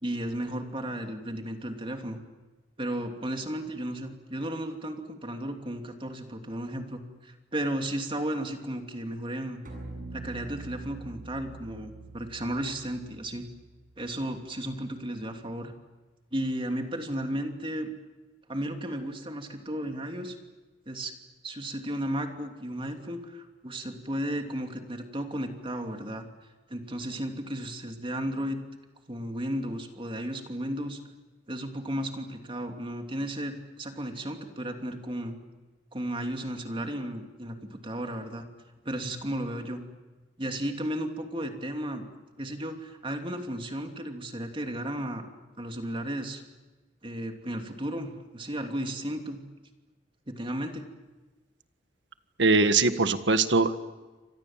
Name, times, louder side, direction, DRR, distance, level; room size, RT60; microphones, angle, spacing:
voice 1, 0.0-2.2 2.8-9.6 10.1-13.5 14.0-15.7 16.3-17.9 18.5-20.4 20.9-21.1 21.4-26.3 26.7-28.6 29.1-31.0 31.5-35.4 35.9-38.5 38.8-39.8 40.4-42.0 42.4-45.3 45.6-46.4 47.0-49.4 50.3-50.9, right 1 dB, 30° right, 4 dB, 2.9 m, -34 dB
sound 1, 9.7-14.9, right 2 dB, 50° right, 7.9 m, -45 dB
voice 2, 52.4-53.8, right 3 dB, 75° right, 10 dB, 1.7 m, -22 dB
29.0 x 26.0 x 7.5 m, 1.2 s
head